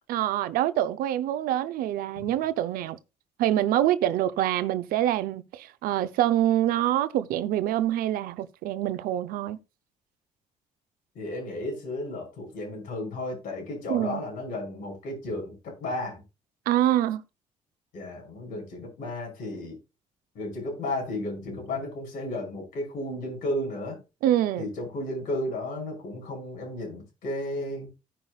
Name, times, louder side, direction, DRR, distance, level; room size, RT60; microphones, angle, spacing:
voice 1, 0.1-3.0 3.4-9.6 13.9-14.2 16.7-17.2 24.2-24.7, right 12 dB, 80° right, 0.8 m, -25 dB
voice 2, 11.1-16.2 17.9-19.8 20.3-24.0 24.6-27.9, left 1 dB, 80° left, 6.2 m, -33 dB
16.5 x 5.6 x 2.4 m
supercardioid pair, 65°, 15 cm